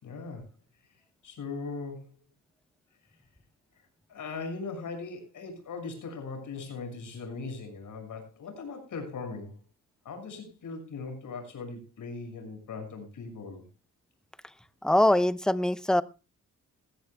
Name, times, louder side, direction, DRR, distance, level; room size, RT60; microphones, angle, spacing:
voice 1, 0.0-0.5 1.2-2.1 4.1-9.6 10.0-13.7, left 4 dB, 75° left, 5 dB, 6.3 m, -39 dB
voice 2, 14.8-16.0, left 1 dB, ahead, 14 dB, 0.7 m, -23 dB
20.0 x 14.5 x 2.3 m, 0.30 s
cardioid pair, 105°, 32 cm